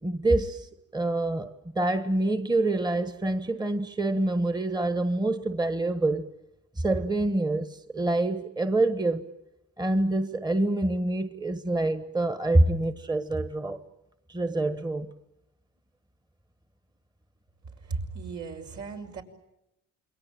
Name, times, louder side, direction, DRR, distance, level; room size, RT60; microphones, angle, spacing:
voice 1, 0.0-0.7 0.9-6.3 6.8-9.2 9.8-13.8 14.3-15.1, right 2 dB, 15° right, 1.4 m, -26 dB
voice 2, 17.8-19.2, right 4 dB, 70° right, 5.7 m, -36 dB
28.5 x 22.5 x 9.0 m
cardioid pair, 90°, 30 cm